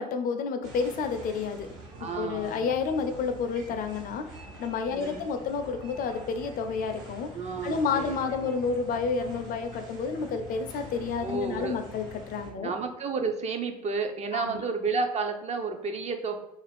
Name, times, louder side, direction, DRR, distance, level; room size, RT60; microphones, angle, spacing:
voice 1, 0.0-1.7 2.1-7.3 7.6-12.7 14.3-14.6, left 5 dB, 45° left, 7 dB, 0.4 m, -30 dB
sound 1, 0.6-12.5, right 1 dB, 70° right, 1.0 m, -45 dB
voice 2, 2.0-2.7 4.9-5.2 7.3-8.2 11.2-11.7 12.6-16.4, right 4 dB, 30° right, 5 dB, 0.4 m, -31 dB
2.4 x 2.2 x 3.3 m, 0.85 s
hypercardioid pair, 65°, 21 cm